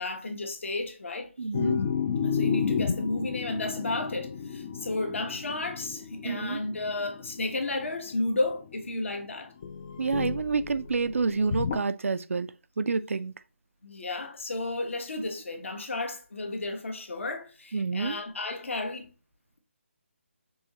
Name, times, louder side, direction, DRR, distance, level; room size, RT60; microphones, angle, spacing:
voice 1, 0.0-1.3 1.6-1.8 2.2-9.5 13.8-19.1, left 2 dB, 70° left, 1.3 m, -33 dB
voice 2, 1.4-1.8 6.2-6.6 10.0-12.5 12.8-13.3 17.7-18.2, right 4 dB, 80° right, 0.4 m, -28 dB
sound 1, 1.5-9.0 9.6-11.8, left 6 dB, 20° left, 0.3 m, -32 dB
5.4 x 2.8 x 3.0 m
figure-of-eight pair, 165°, 7 cm